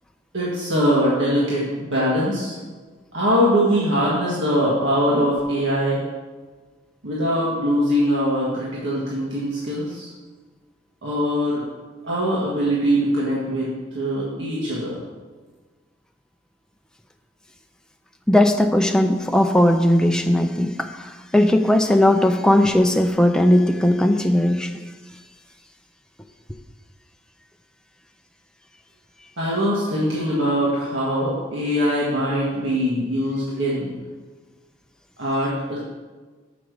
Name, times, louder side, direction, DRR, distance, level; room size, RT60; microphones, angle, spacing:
voice 1, 0.3-2.6 3.1-6.0 7.0-10.1 11.0-11.6 12.0-15.0 29.4-34.0 35.2-35.8, equal, 85° right, -7 dB, 1.7 m, -22 dB
voice 2, 18.3-24.7, left 1 dB, 5° left, 5 dB, 0.5 m, -18 dB
6.8 x 5.9 x 6.3 m, 1.4 s
head